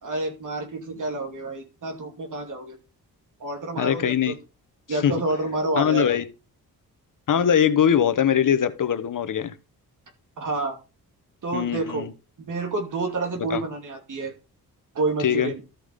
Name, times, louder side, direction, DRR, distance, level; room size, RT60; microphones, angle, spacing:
voice 1, 0.0-2.8 3.4-4.3 4.9-6.2 10.4-10.8 11.4-12.1 12.4-14.3 14.9-15.6, right 2 dB, 55° right, 2.5 m, -29 dB
voice 2, 3.8-4.4 4.9-5.2 5.8-6.2 7.3-9.5 11.5-12.1 13.5-13.6 15.2-15.5, left 8 dB, 55° left, 1.1 m, -22 dB
13.5 x 5.1 x 5.3 m
cardioid pair, 110°, 38 cm